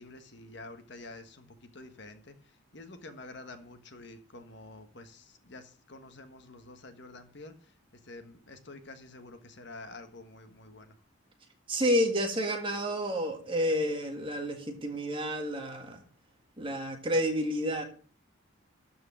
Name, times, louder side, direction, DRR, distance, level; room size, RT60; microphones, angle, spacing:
voice 1, 0.0-2.3 2.7-7.7 8.0-10.9, left 2 dB, 55° left, 8 dB, 1.3 m, -48 dB
voice 2, 11.7-16.0 16.6-17.8, equal, 25° right, 3 dB, 1.8 m, -30 dB
12.5 x 4.7 x 7.4 m, 0.42 s
head